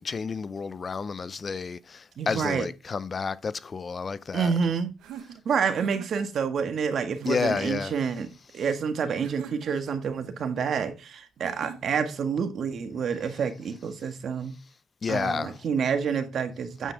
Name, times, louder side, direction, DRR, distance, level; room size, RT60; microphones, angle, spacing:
voice 1, 0.0-4.5 7.3-7.9 15.0-15.6, left 5 dB, 40° left, 0.5 m, -30 dB
voice 2, 2.2-2.7 4.3-4.9 5.5-14.6 15.1-16.9, right 6 dB, 60° right, 1.7 m, -28 dB
sound 1, 5.0-6.3 7.1-7.7 9.2-10.0 11.4-12.2, right 9 dB, 85° right, 1.2 m, -43 dB
9.2 x 7.6 x 3.5 m
cardioid pair, 90°, 0 cm